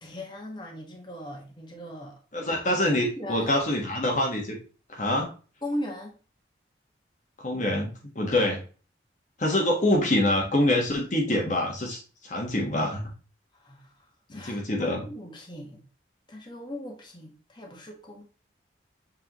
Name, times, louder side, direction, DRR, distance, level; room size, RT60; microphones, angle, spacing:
voice 1, 0.0-2.2 3.2-3.6 5.6-6.2 13.5-13.9 14.3-15.8 16.3-18.2, left 1 dB, 25° left, 0 dB, 1.5 m, -38 dB
voice 2, 2.3-4.6 4.9-5.3 7.4-7.9 8.1-8.6 9.4-13.0 14.4-15.1, left 1 dB, 40° left, 0 dB, 1.4 m, -25 dB
7.5 x 4.8 x 3.0 m, 0.36 s
head